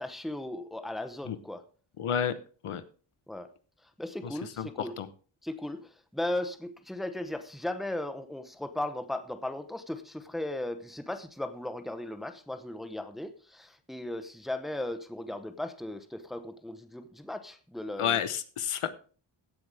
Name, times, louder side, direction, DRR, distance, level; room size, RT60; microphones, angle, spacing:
voice 1, 0.0-1.6 3.3-3.5 4.0-5.0 5.4-18.2, left 1 dB, ahead, 8 dB, 0.8 m, -37 dB
voice 2, 2.0-2.3 2.6-2.8 4.6-5.1 18.0-18.9, left 8 dB, 80° left, 12 dB, 1.1 m, -30 dB
16.5 x 7.9 x 3.4 m, 0.38 s
wide cardioid pair, 150°, 50 cm